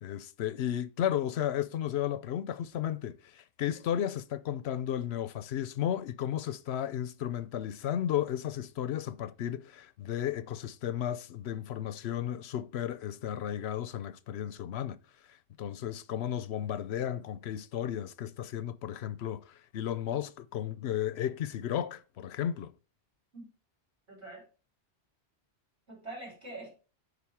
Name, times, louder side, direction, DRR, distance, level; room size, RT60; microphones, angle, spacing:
voice 1, 0.0-15.0 15.6-22.7, left 10 dB, 80° left, 0.9 m, -34 dB
voice 2, 24.1-24.5 25.9-26.7, right 2 dB, 80° right, 5.3 m, -44 dB
8.4 x 5.1 x 4.6 m
omnidirectional pair, 1.1 m